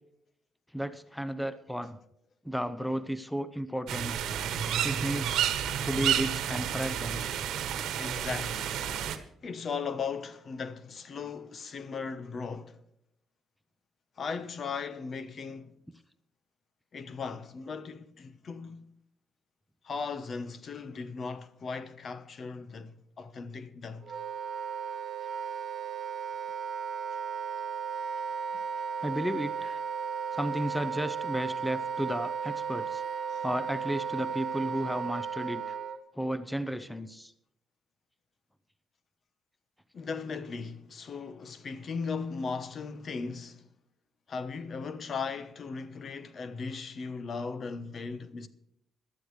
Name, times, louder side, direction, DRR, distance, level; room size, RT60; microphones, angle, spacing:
voice 1, 0.7-2.0 2.4-4.2 4.8-5.4 5.8-7.2 29.0-29.8 30.3-33.0 33.4-35.7 36.2-37.3, equal, 5° left, 0.7 m, -33 dB
sound 1, 3.9-9.2, right 9 dB, 80° right, 1.2 m, -30 dB
voice 2, 8.0-8.8 9.4-12.8 14.2-15.7 16.9-18.8 19.8-24.1 33.3-33.4 39.9-43.7 44.3-48.5, left 5 dB, 50° left, 1.0 m, -37 dB
Wind instrument woodwind instrument, 24.0-36.0, right 6 dB, 55° right, 1.8 m, -35 dB
18.5 x 12.0 x 3.2 m
cardioid pair, 90°, 0 cm